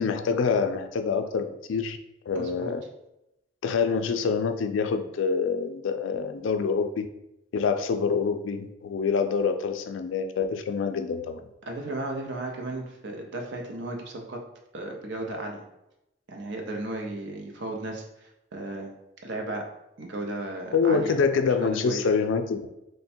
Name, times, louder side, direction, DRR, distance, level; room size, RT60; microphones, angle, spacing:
voice 1, 0.0-2.0 2.3-2.8 3.6-7.1 7.5-11.4 20.7-22.7, left 5 dB, 75° left, 8 dB, 0.3 m, -26 dB
voice 2, 2.3-2.7 11.6-14.4 14.7-15.6 16.3-18.9 19.2-19.7 20.0-21.2 21.6-22.0, right 2 dB, 65° right, 2 dB, 0.6 m, -35 dB
3.2 x 2.2 x 4.2 m, 0.88 s
head